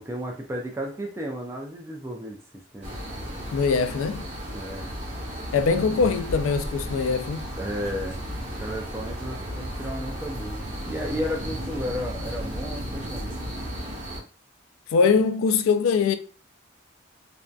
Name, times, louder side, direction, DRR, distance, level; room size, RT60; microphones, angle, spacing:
voice 1, 0.0-2.4 2.7-3.0 4.5-4.9 7.6-13.3, equal, 15° right, 0.3 m, -33 dB
sound 1, 2.8-14.2, equal, 35° right, 0.8 m, -34 dB
voice 2, 3.5-4.3 5.5-7.5 14.9-16.2, left 5 dB, 85° left, 0.3 m, -22 dB
2.5 x 2.2 x 2.3 m
head